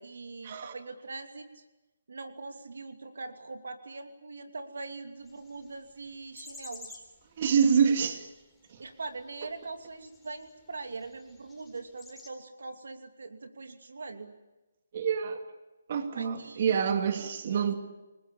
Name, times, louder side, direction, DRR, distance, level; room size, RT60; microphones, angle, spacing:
voice 1, 0.0-1.6 2.1-7.0 8.8-14.3 16.1-17.7, right 3 dB, 80° right, 6 dB, 2.8 m, -42 dB
sound 1, 5.2-12.3, left 3 dB, 5° left, 4.1 m, -53 dB
voice 2, 7.4-8.2 8.7-8.8 14.9-15.4 15.9-17.7, right 7 dB, 45° right, 6 dB, 2.6 m, -26 dB
28.5 x 19.5 x 8.4 m, 1.1 s
hypercardioid pair, 155°, 0 cm